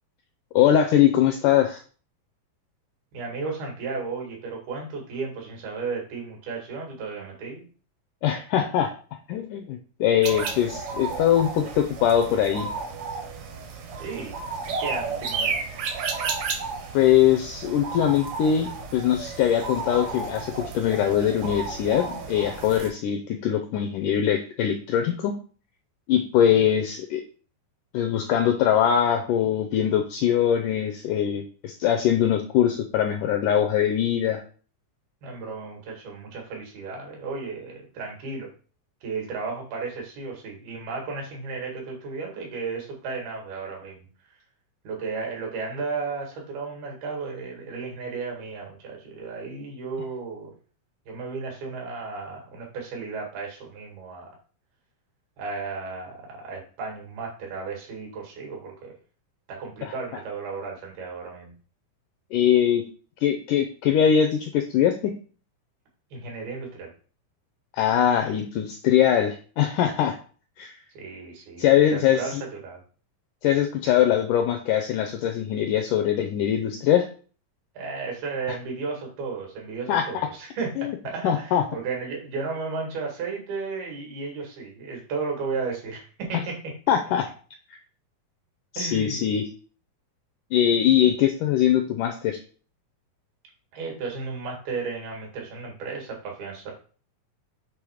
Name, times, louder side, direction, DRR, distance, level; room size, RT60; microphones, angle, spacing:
voice 1, 0.5-1.8 8.2-8.9 9.3-12.7 16.9-25.3 26.1-27.2 27.9-34.4 59.8-59.9 62.3-62.8 63.2-65.1 67.7-70.2 70.6-70.7 71.6-72.4 73.4-77.1 79.9-80.3 80.8-80.9 81.2-81.6 86.9-87.3 88.7-89.5 90.5-92.4, left 10 dB, 85° left, 5 dB, 1.8 m, -22 dB
voice 2, 3.1-7.7 14.0-14.4 14.6-15.6 35.2-38.5 39.0-44.1 44.8-50.5 51.1-54.3 55.4-58.9 59.5-61.5 66.1-66.9 71.0-71.6 71.9-72.8 73.8-74.0 77.8-86.6 88.8-89.3 93.7-96.7, right 4 dB, 85° right, -1 dB, 3.9 m, -34 dB
sound 1, 10.2-22.9, right 4 dB, 70° right, 1.6 m, -32 dB
7.7 x 3.1 x 4.9 m, 0.40 s
omnidirectional pair, 4.2 m